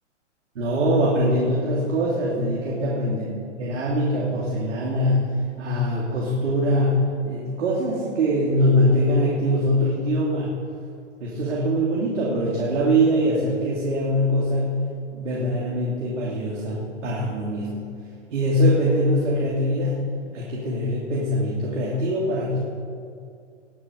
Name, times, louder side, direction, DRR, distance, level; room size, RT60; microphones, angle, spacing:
voice 1, 0.5-3.2 3.6-10.6 11.2-14.8 15.1-17.8 18.3-20.0 20.3-22.6, equal, 70° right, -5 dB, 3.1 m, -23 dB
20.5 x 7.8 x 5.4 m, 2.3 s
hypercardioid pair, 125°, 37 cm